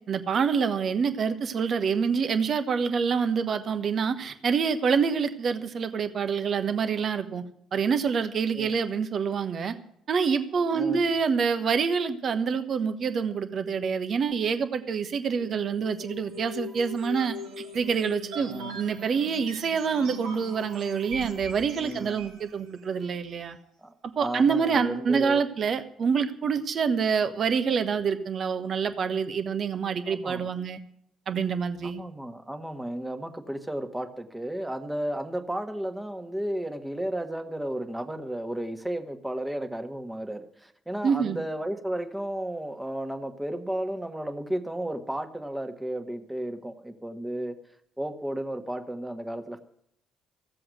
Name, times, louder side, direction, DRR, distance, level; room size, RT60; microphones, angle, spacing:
voice 1, 0.1-7.4 7.7-9.7 10.1-17.3 17.7-23.6 24.2-30.8 31.3-32.0 41.0-41.4, right 6 dB, 45° right, 10 dB, 1.2 m, -26 dB
sound 1, 15.3-22.5, right 1 dB, 65° right, 1.7 m, -40 dB
voice 2, 18.4-18.8 21.7-22.3 23.8-25.4 30.0-30.5 31.8-47.6 48.0-49.6, right 1 dB, 10° right, 6 dB, 1.6 m, -33 dB
15.5 x 7.7 x 7.7 m, 0.72 s
figure-of-eight pair, 45°, 0 cm